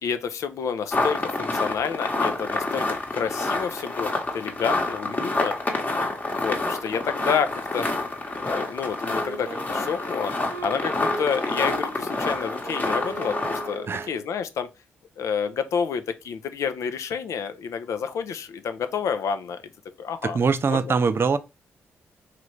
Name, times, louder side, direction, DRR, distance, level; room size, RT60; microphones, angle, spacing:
voice 1, 0.0-5.5 6.3-7.9 8.4-10.3 10.6-14.7 15.2-19.6 20.0-20.4, left 6 dB, 70° left, 0.4 m, -29 dB
sound 1, 0.9-13.8, left 2 dB, 30° left, 1.0 m, -28 dB
Wind instrument woodwind instrument, 9.1-14.3, right 2 dB, 80° right, 1.1 m, -38 dB
voice 2, 20.2-21.4, right 5 dB, 45° right, 0.4 m, -22 dB
3.0 x 2.5 x 3.1 m
supercardioid pair, 50°, 5 cm